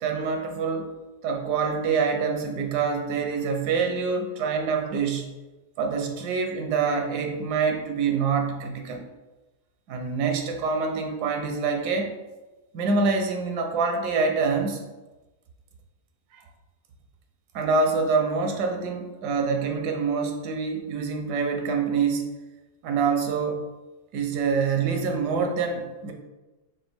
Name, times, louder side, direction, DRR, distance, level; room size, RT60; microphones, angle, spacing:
voice 1, 0.0-0.9 1.2-5.3 5.8-9.0 9.9-12.1 12.7-14.8 16.3-16.4 17.5-22.3 22.8-23.6 24.1-26.1, right 5 dB, 85° right, 3 dB, 1.2 m, -26 dB
5.9 x 2.3 x 3.3 m, 1.1 s
omnidirectional pair, 1.7 m